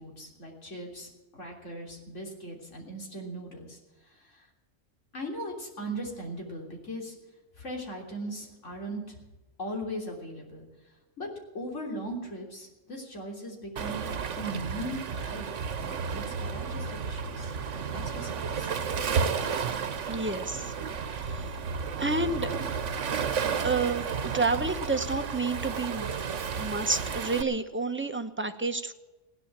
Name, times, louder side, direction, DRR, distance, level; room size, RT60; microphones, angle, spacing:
voice 1, 0.0-3.8 4.1-4.5 5.1-7.2 7.6-9.2 9.6-10.7 11.2-11.3 11.5-14.1 14.4-15.5 15.8-18.7, right 1 dB, 80° left, 0 dB, 3.7 m, -39 dB
Waves surf, 13.8-27.4, right 6 dB, 75° right, 1.3 m, -32 dB
voice 2, 20.1-20.7 21.0-21.6 22.0-22.6 23.6-26.1 26.5-28.9, right 3 dB, 10° right, 7 dB, 0.9 m, -30 dB
17.0 x 10.0 x 7.4 m, 1.1 s
omnidirectional pair, 1.3 m